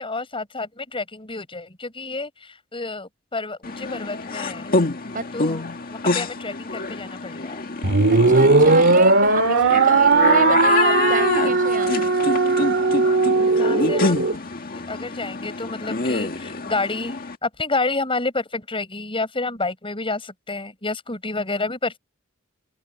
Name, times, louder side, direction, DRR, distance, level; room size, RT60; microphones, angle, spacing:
voice 1, 0.0-4.7 5.3-7.7 13.6-14.3 14.7-22.0, left 3 dB, 25° left, 7.8 m, -29 dB
sound 1, 3.6-17.4, left 3 dB, 45° left, 1.8 m, -26 dB
sound 2, 7.8-14.3, right 3 dB, 60° right, 2.2 m, -17 dB
voice 2, 8.1-12.1, right 4 dB, 40° right, 7.1 m, -29 dB
open air
head